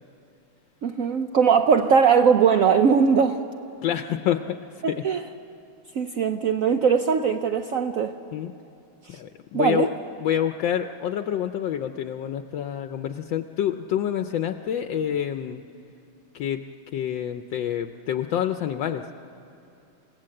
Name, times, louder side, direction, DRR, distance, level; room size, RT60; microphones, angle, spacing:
voice 1, 0.8-3.4 4.8-5.2 6.0-8.1 9.5-9.9, right 6 dB, 85° right, 7 dB, 0.7 m, -20 dB
voice 2, 3.8-4.6 4.9-5.0 8.3-8.5 9.1-9.9 10.2-15.6 16.3-16.6 16.9-19.0, left 10 dB, 70° left, 7 dB, 1.3 m, -27 dB
28.5 x 17.0 x 7.7 m, 2.8 s
omnidirectional pair, 2.3 m